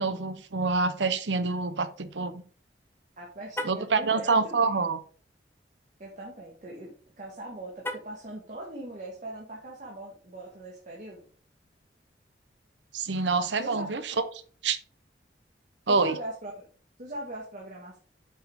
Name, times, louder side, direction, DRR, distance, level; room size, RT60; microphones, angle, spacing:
voice 1, 0.0-2.4 3.6-5.0 12.9-14.1 14.6-14.8 15.9-16.1, right 4 dB, 80° right, 11 dB, 0.9 m, -26 dB
voice 2, 3.2-4.6 6.0-11.3 13.6-14.0 15.9-16.7 17.0-18.0, right 1 dB, 45° right, -3 dB, 1.9 m, -40 dB
Car, 3.5-3.9 7.8-8.3, left 1 dB, 15° left, 0.9 m, -36 dB
8.1 x 5.8 x 3.7 m, 0.41 s
head